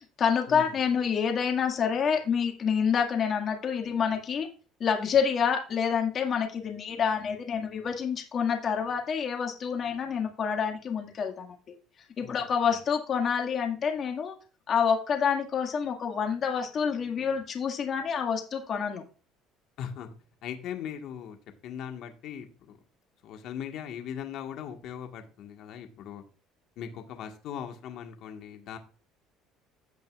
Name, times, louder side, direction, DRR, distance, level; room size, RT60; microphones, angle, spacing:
voice 1, 0.0-4.5 4.8-11.5 12.2-14.3 14.7-19.0, left 7 dB, 45° left, 3 dB, 2.0 m, -28 dB
voice 2, 12.2-12.8 19.8-20.1 20.4-21.4 21.6-22.8 23.2-26.2 26.8-28.8, left 8 dB, 65° left, 5 dB, 1.6 m, -39 dB
16.0 x 5.4 x 2.4 m, 0.36 s
supercardioid pair, 80°, 0 cm